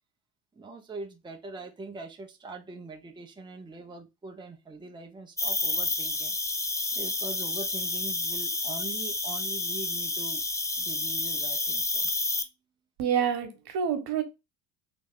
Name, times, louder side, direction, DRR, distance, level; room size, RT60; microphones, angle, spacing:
voice 1, 0.5-6.3 6.9-10.4 10.8-12.1, right 3 dB, 10° right, 0.8 m, -42 dB
Cricket, 5.4-12.4, left 2 dB, 10° left, 0.4 m, -30 dB
voice 2, 13.0-14.2, right 8 dB, 60° right, 1.2 m, -27 dB
3.3 x 3.0 x 3.6 m
hypercardioid pair, 75°, 44 cm